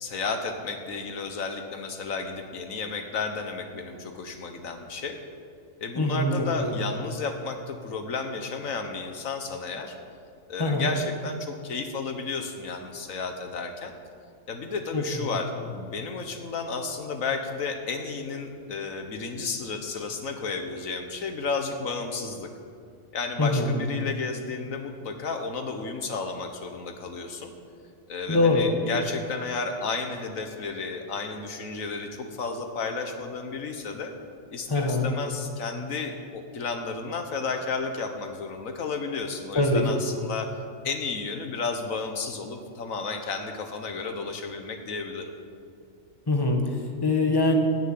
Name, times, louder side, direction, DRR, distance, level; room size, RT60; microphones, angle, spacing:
voice 1, 0.0-5.2 5.8-10.0 10.5-13.9 14.5-22.5 23.1-27.5 28.1-34.1 34.5-40.5 40.8-45.3, left 4 dB, 85° left, 5 dB, 1.6 m, -32 dB
voice 2, 5.9-6.8 10.6-10.9 14.9-15.3 23.4-23.7 28.3-28.7 34.7-35.0 39.5-40.0 46.3-46.6 47.0-47.6, left 2 dB, 20° left, 2 dB, 1.6 m, -23 dB
15.5 x 7.0 x 9.4 m, 2.3 s
omnidirectional pair, 1.4 m